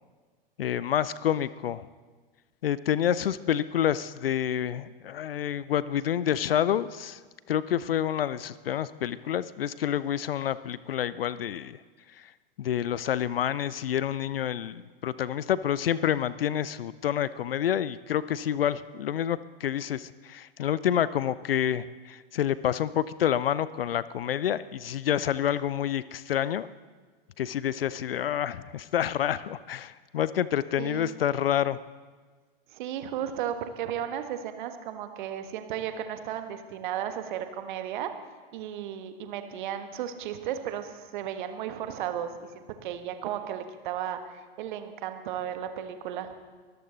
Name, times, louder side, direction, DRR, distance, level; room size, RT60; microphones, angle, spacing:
voice 1, 0.6-1.8 2.6-7.2 7.5-11.8 12.6-26.7 27.4-31.8, left 10 dB, 70° left, 17 dB, 0.5 m, -28 dB
voice 2, 30.8-31.1 32.7-38.1 38.5-46.3, right 10 dB, 55° right, 8 dB, 1.5 m, -34 dB
23.5 x 14.0 x 4.0 m, 1.4 s
figure-of-eight pair, 95°, 30 cm